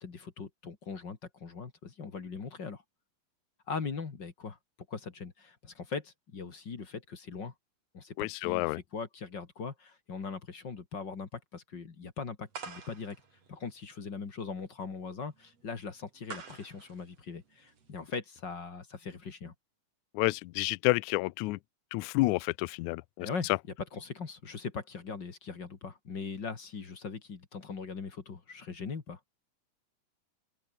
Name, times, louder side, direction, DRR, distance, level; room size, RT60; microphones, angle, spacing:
voice 1, 0.0-2.8 3.7-4.6 4.9-7.5 7.9-13.2 13.5-19.5 23.2-23.5 23.9-29.2, left 5 dB, 35° left, 2.5 m, -40 dB
voice 2, 8.2-8.8 20.1-21.6 21.9-23.3, left 21 dB, 80° left, 1.8 m, -29 dB
sound 1, 12.5-18.1, right 5 dB, 50° right, 4.6 m, -48 dB
omnidirectional pair, 3.8 m